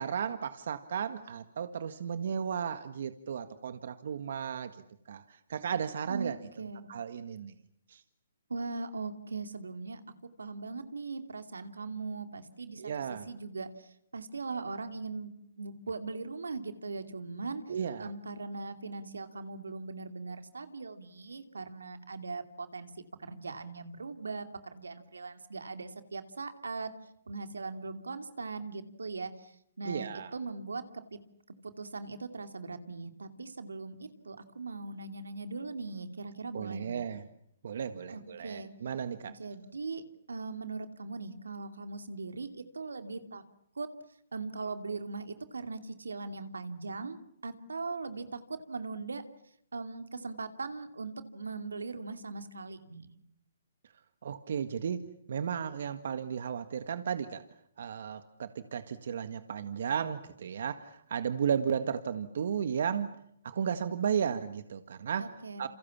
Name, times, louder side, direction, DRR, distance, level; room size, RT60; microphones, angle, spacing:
voice 1, 0.0-4.7 5.1-7.5 7.9-8.0 12.8-13.3 17.7-18.1 29.8-30.3 36.5-37.2 37.6-39.4 54.2-55.0 55.3-57.4 57.8-63.1 63.4-65.3 65.6-65.7, right 7 dB, 65° right, 10 dB, 1.7 m, -34 dB
voice 2, 6.1-6.8 8.5-12.8 13.1-17.7 18.0-22.9 23.2-26.9 27.3-37.0 38.1-38.7 39.3-40.0 40.3-43.4 43.8-43.9 44.3-49.2 49.7-53.1 65.2-65.7, right 3 dB, 90° right, 8 dB, 2.7 m, -40 dB
28.5 x 28.0 x 7.3 m, 0.73 s
hypercardioid pair, 140°, 0 cm